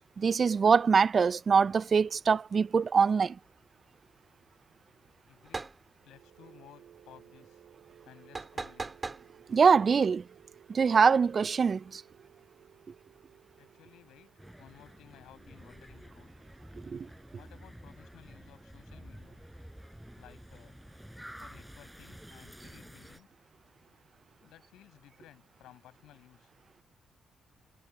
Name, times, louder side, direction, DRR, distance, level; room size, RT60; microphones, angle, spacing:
voice 1, 0.2-3.4 9.5-10.2 10.7-12.0 16.9-17.1, right 5 dB, 50° right, 0.6 m, -24 dB
voice 2, 5.3-5.7 6.0-7.6 8.0-8.9 13.6-14.3 14.6-16.3 17.4-19.4 20.2-20.8 21.4-23.3 24.4-26.5, left 14 dB, 80° left, 6.4 m, -57 dB
sound 1, 5.4-5.8 8.3-9.2, right 3 dB, 30° right, 3.8 m, -38 dB
sound 2, 5.9-19.8, right 10 dB, 70° right, 7.7 m, -60 dB
sound 3, 14.4-23.2, equal, 5° right, 6.6 m, -50 dB
hypercardioid pair, 50°, 0 cm